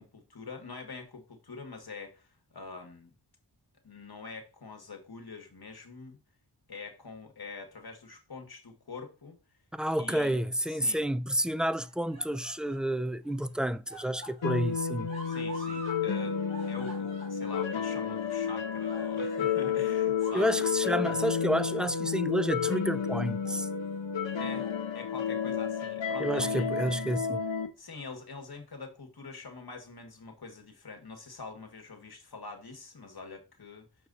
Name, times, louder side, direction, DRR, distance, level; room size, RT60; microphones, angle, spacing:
voice 1, 0.0-3.1 3.8-6.2 6.7-9.4 10.0-10.4 10.7-11.0 15.3-16.4 16.7-20.7 24.4-26.7 27.8-33.9, left 4 dB, 55° left, 1.9 m, -44 dB
voice 2, 9.8-15.1 20.3-23.7 26.2-27.4, right 1 dB, ahead, 0.3 m, -30 dB
sound 1, 11.7-12.9 13.2-16.0 16.3-19.7 20.1-20.7 21.1-21.4 22.0-23.1 23.4-23.6 24.3-24.8 25.2-25.3 26.4-27.1 28.0-28.1, right 1 dB, 35° right, 3.9 m, -49 dB
sound 2, 14.4-27.7, left 7 dB, 90° left, 0.9 m, -31 dB
6.5 x 4.7 x 4.1 m
wide cardioid pair, 50°, 44 cm